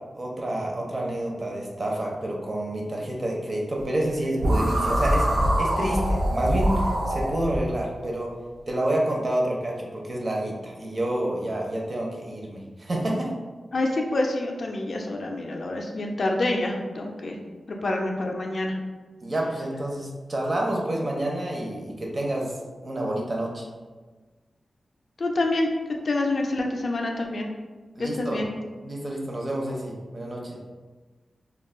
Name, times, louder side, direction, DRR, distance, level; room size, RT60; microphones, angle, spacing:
voice 1, 0.1-8.3 8.7-13.3 19.2-22.5 22.8-23.6 28.0-28.4 28.8-30.6, right 1 dB, 35° right, -2 dB, 0.5 m, -28 dB
sound 1, 4.4-7.6, equal, 90° right, 0.5 m, -23 dB
voice 2, 13.7-17.4 17.8-18.7 25.2-25.7 26.0-27.5 28.0-28.5, left 2 dB, 50° left, 1 dB, 0.3 m, -27 dB
2.3 x 2.2 x 3.5 m, 1.3 s
wide cardioid pair, 145°, 0 cm